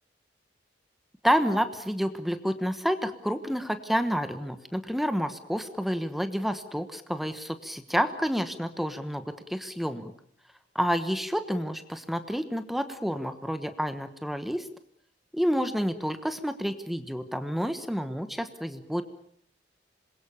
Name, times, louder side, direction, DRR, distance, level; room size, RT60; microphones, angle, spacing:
voice 1, 1.2-9.2 9.5-10.1 10.7-14.7 15.3-19.0, equal, ahead, 10 dB, 1.2 m, -29 dB
26.5 x 22.0 x 7.0 m, 0.63 s
head